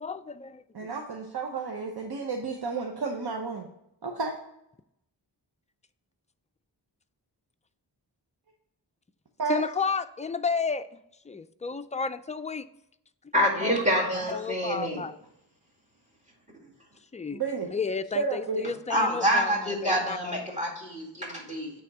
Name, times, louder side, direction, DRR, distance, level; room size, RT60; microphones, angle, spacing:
voice 1, 0.0-0.6 9.5-10.9 11.3-12.6 14.2-15.2 17.1-20.4, left 5 dB, 20° left, 10 dB, 0.3 m, -32 dB
voice 2, 0.7-3.7 4.0-4.4 9.4-9.6 17.3-17.7 18.1-18.7, right 4 dB, 60° right, 2 dB, 0.9 m, -31 dB
voice 3, 13.3-15.0 18.9-21.7, equal, 15° right, -1 dB, 2.2 m, -26 dB
8.7 x 3.5 x 4.7 m, 0.80 s
wide cardioid pair, 85°, 42 cm